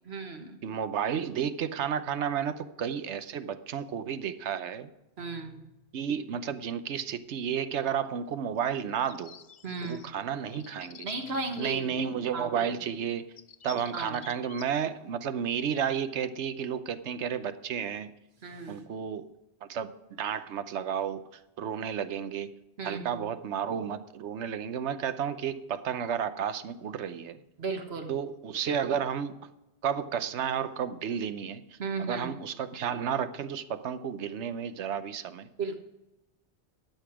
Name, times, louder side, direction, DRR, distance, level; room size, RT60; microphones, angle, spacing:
voice 1, 0.0-0.6 5.2-5.6 9.6-10.2 11.0-12.0 12.3-12.7 13.9-14.2 18.4-18.9 22.8-23.3 27.6-28.1 31.8-32.4 35.6-35.8, right 4 dB, 65° right, 5 dB, 1.6 m, -35 dB
voice 2, 0.6-4.9 5.9-9.4 9.8-11.1 11.6-13.3 13.6-18.1 18.7-19.3 19.6-21.2 21.6-22.5 22.8-27.4 28.1-29.4 29.8-35.5, right 8 dB, 85° right, 12 dB, 1.0 m, -32 dB
sound 1, 8.6-10.1 10.5-11.8 13.0-13.1 13.4-14.7, left 8 dB, 50° left, 0.6 m, -50 dB
12.0 x 7.8 x 4.9 m, 0.94 s
omnidirectional pair, 1.2 m